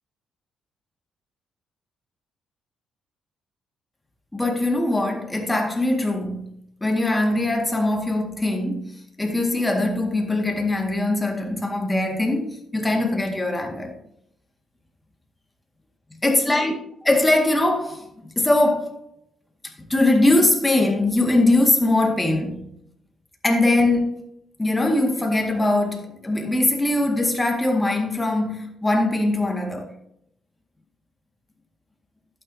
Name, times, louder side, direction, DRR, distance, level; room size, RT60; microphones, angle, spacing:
voice 1, 4.3-6.5 6.8-8.9 9.2-14.0 16.2-16.8 17.0-19.0 19.9-22.7 23.4-24.2 24.6-29.9, left 2 dB, 15° left, 1.9 m, -21 dB
11.5 x 9.2 x 2.8 m
cardioid pair, 90°, 0 cm